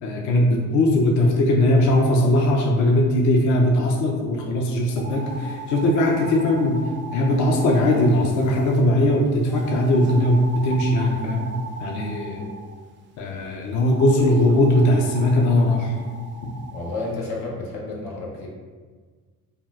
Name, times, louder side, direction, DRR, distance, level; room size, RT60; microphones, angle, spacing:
voice 1, 0.0-6.8 7.1-12.5 13.2-15.9 16.4-16.5, left 1 dB, 55° left, 0 dB, 0.5 m, -20 dB
sound 1, 4.9-8.8 9.5-12.8 13.8-17.1, right 3 dB, 35° right, 0.4 m, -38 dB
voice 2, 16.7-18.5, left 2 dB, 90° left, -3 dB, 0.8 m, -31 dB
3.6 x 2.1 x 2.3 m, 1.5 s
supercardioid pair, 80°, 35 cm